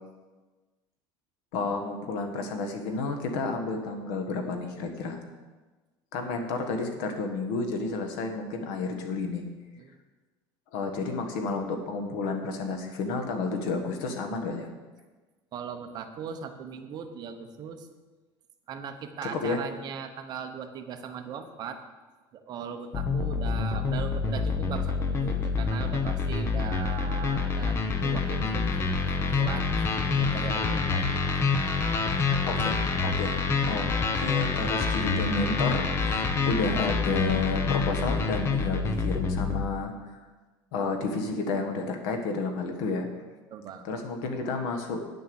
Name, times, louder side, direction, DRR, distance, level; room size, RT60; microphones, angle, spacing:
voice 1, 1.5-5.2 6.1-9.4 10.7-14.7 19.3-19.6 32.5-33.9 34.2-39.9 40.7-43.1 43.8-45.0, left 3 dB, 85° left, 5 dB, 1.6 m, -31 dB
voice 2, 15.5-17.9 18.7-21.8 22.3-27.8 28.0-29.7 30.2-31.2 43.5-43.9, right 7 dB, 40° right, 6 dB, 1.0 m, -39 dB
sound 1, 22.9-39.7, left 4 dB, 25° left, 0.8 m, -27 dB
9.6 x 6.7 x 7.1 m, 1.3 s
cardioid pair, 160°, 11 cm